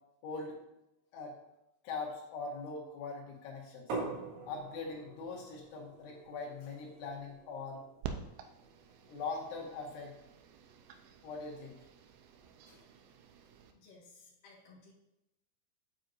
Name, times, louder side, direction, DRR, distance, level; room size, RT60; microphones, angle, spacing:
voice 1, 0.2-0.6 1.1-1.4 1.8-3.9 4.5-7.8 9.1-10.1 11.2-11.8 12.7-12.8, left 4 dB, 80° left, -2 dB, 4.1 m, -41 dB
sound 1, 3.9-9.5, right 3 dB, 55° right, 3.5 m, -45 dB
sound 2, 8.0-13.7, right 7 dB, 85° right, 2.7 m, -49 dB
voice 2, 13.7-14.9, left 3 dB, 60° left, -2 dB, 2.8 m, -58 dB
9.0 x 8.9 x 2.7 m, 0.89 s
omnidirectional pair, 5.4 m